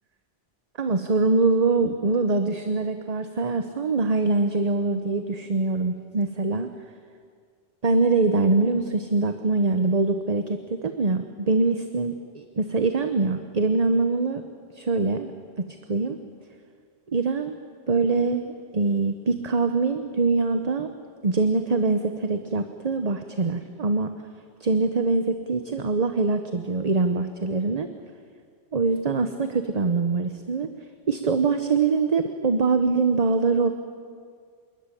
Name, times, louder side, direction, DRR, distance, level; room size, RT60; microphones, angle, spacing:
voice 1, 0.8-6.7 7.8-14.4 14.7-15.3 15.6-16.2 17.1-17.6 17.9-20.9 21.2-24.1 24.6-27.9 28.7-30.7 31.1-33.7, right 3 dB, 35° right, 8 dB, 1.0 m, -23 dB
27.5 x 13.0 x 10.0 m, 2.1 s
omnidirectional pair, 1.2 m